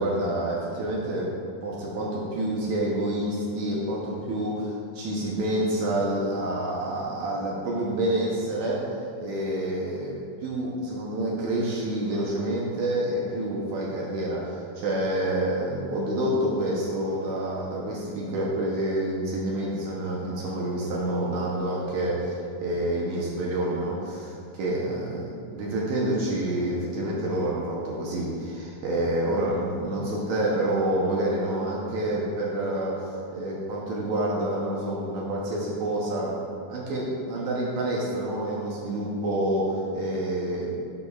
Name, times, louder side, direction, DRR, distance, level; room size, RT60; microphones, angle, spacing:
voice 1, 0.0-1.3 1.6-8.9 9.2-36.4 36.7-40.7, right 1 dB, 75° right, -4 dB, 1.7 m, -28 dB
11.0 x 5.4 x 2.3 m, 2.4 s
omnidirectional pair, 4.0 m